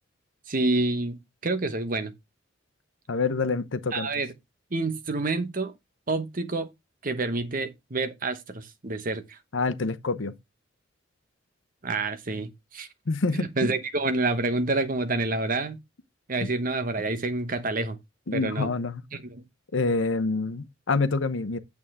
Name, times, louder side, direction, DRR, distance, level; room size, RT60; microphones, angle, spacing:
voice 1, 0.5-2.1 3.9-4.3 4.7-5.7 6.1-6.7 7.0-9.4 11.8-12.9 13.3-15.8 16.3-18.0 18.3-18.7 19.1-19.4, right 2 dB, 45° right, 1.1 m, -28 dB
voice 2, 3.1-4.1 9.5-10.3 13.1-13.7 18.3-19.0 19.7-21.6, left 3 dB, 80° left, 0.8 m, -27 dB
8.8 x 7.0 x 3.5 m
head